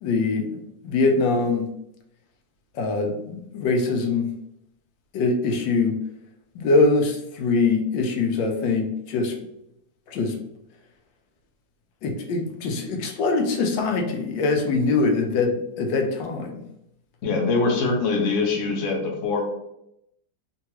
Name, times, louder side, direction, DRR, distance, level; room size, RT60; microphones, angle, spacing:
voice 1, 0.0-1.7 2.7-4.3 5.1-6.0 6.5-9.4 10.1-10.4 12.0-16.6, left 3 dB, 90° left, 4 dB, 1.3 m, -23 dB
voice 2, 17.2-19.4, left 3 dB, 60° left, 1 dB, 0.9 m, -23 dB
3.7 x 2.3 x 2.9 m, 0.80 s
omnidirectional pair, 1.9 m